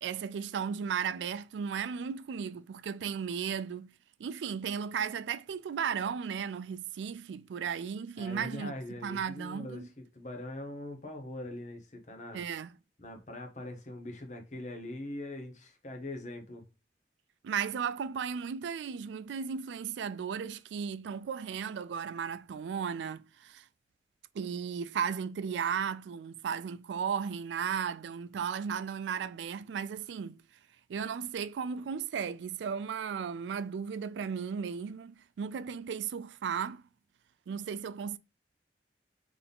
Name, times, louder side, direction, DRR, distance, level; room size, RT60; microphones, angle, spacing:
voice 1, 0.0-3.9 4.2-8.7 9.0-9.9 12.3-12.7 17.4-23.6 24.3-30.4 30.9-36.8 37.5-38.2, right 7 dB, 85° right, 0.3 m, -35 dB
voice 2, 8.2-12.4 13.0-16.6, left 1 dB, 40° left, 1.0 m, -42 dB
4.0 x 3.3 x 3.5 m
head